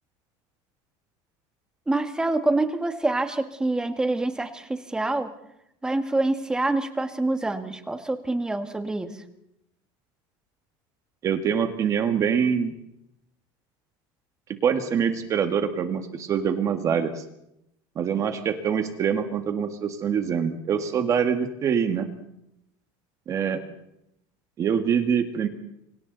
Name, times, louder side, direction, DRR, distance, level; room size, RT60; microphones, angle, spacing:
voice 1, 1.9-5.3 5.8-9.2, right 2 dB, 5° right, 7 dB, 1.8 m, -26 dB
voice 2, 11.2-12.7 14.6-17.2 18.0-22.1 23.3-23.6 24.6-25.5, right 7 dB, 30° right, 7 dB, 1.8 m, -24 dB
29.0 x 25.0 x 4.1 m, 0.79 s
cardioid pair, 170°, 11 cm